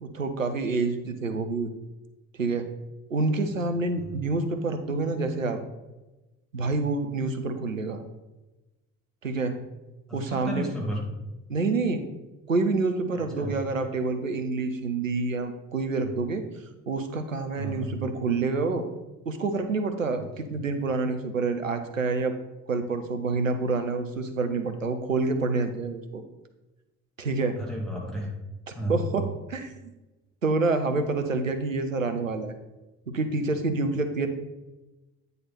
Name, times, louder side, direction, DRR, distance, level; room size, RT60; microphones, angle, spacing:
voice 1, 0.0-1.7 2.4-2.7 3.1-5.6 6.5-8.0 9.2-9.6 10.1-10.7 11.5-12.0 12.5-16.4 16.9-18.8 19.3-22.3 22.7-26.2 27.2-27.6 28.9-29.9 30.4-32.5 33.1-34.3, right 3 dB, 90° right, 8 dB, 0.6 m, -27 dB
voice 2, 10.1-11.0 13.3-13.5 17.6-17.9 27.6-28.3 28.7-29.0, right 1 dB, ahead, -3 dB, 2.3 m, -32 dB
9.0 x 4.0 x 4.2 m, 1.1 s
figure-of-eight pair, 50°, 38 cm